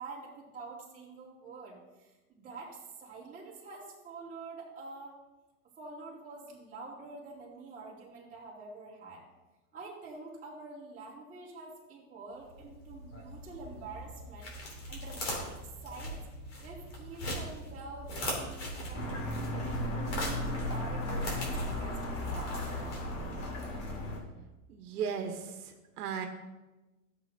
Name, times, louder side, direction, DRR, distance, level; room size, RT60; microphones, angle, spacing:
voice 1, 0.0-5.1 5.8-9.2 9.7-15.6 15.8-16.2 16.6-23.0, right 3 dB, 15° right, -7 dB, 2.6 m, -47 dB
sound 1, 12.4-23.4, equal, 50° left, 3.0 m, -41 dB
sound 2, 18.9-24.2, left 1 dB, 65° left, 2.6 m, -35 dB
voice 2, 24.7-26.3, right 7 dB, 80° right, 5 dB, 1.2 m, -36 dB
13.5 x 7.4 x 2.8 m, 1.1 s
supercardioid pair, 160°, 45 cm